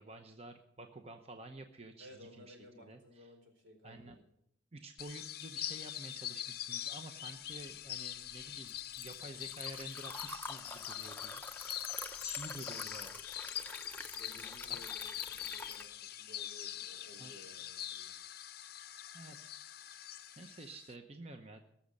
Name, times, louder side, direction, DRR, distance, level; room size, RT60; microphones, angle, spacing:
voice 1, 0.0-3.3 3.8-4.2 4.7-11.4 12.2-13.2 14.6-14.8 17.2-17.5 18.8-19.9 20.4-21.6, right 2 dB, 30° right, 5 dB, 0.8 m, -50 dB
voice 2, 2.0-4.2 14.1-18.1, left 1 dB, 80° right, 3 dB, 4.3 m, -57 dB
sound 1, 5.0-20.9, left 12 dB, 50° left, 0.6 m, -44 dB
Liquid, 7.6-15.9, left 3 dB, 10° left, 0.6 m, -47 dB
19.0 x 7.2 x 6.5 m, 0.74 s
head